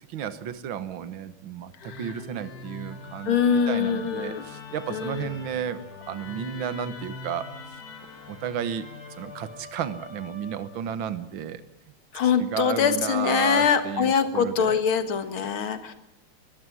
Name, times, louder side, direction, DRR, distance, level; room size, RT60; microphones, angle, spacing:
voice 1, 0.1-5.8 6.1-7.5 8.3-8.9 9.2-11.6 12.4-14.8, right 9 dB, 70° right, 13 dB, 2.0 m, -33 dB
Musical instrument, 1.8-11.0, left 3 dB, 50° left, 2.8 m, -43 dB
voice 2, 3.3-4.4 4.9-5.3 12.1-15.9, left 7 dB, 80° left, 10 dB, 2.4 m, -23 dB
22.0 x 15.5 x 9.8 m, 0.84 s
omnidirectional pair, 2.3 m